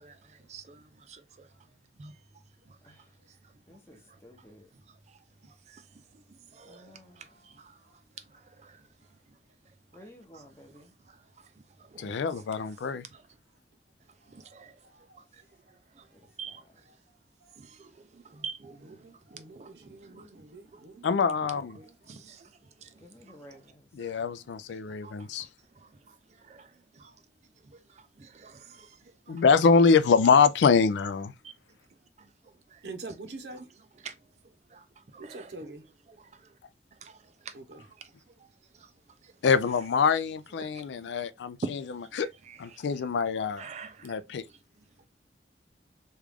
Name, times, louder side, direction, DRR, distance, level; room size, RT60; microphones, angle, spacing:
voice 1, 0.0-1.5 2.0-2.2 2.7-3.5 4.1-4.2 4.9-7.8 8.3-8.9 10.0-10.1 10.3-11.5 11.8-13.2 14.3-14.8 15.3-15.4 15.7-16.1 16.4-16.8 17.6-21.1 22.1-23.4 24.0-25.5 25.7-27.2 27.6-29.6 31.4-31.5 32.2-32.3 32.7-32.8 33.5-33.6 34.0-34.2 34.7-35.7 36.1-36.3 37.0-38.5 38.7-38.9 39.2-39.3 39.6-39.7 40.6-40.8 41.6-43.0 43.6-44.2 44.5-44.6, right 5 dB, 40° right, 0.3 m, -48 dB
voice 2, 3.7-4.7 6.6-7.3 9.9-10.9 16.1-16.6 23.0-23.9, left 1 dB, 15° left, 0.7 m, -53 dB
voice 3, 12.0-13.0 21.0-21.7 24.0-25.5 29.3-31.3 39.4-41.6 42.2-42.3 42.6-43.6 44.0-44.4, left 5 dB, 80° left, 0.4 m, -24 dB
voice 4, 19.0-21.0 21.4-22.3 32.8-33.7 35.2-35.9 37.5-37.8, right 2 dB, 70° right, 0.8 m, -45 dB
3.2 x 2.4 x 3.4 m
head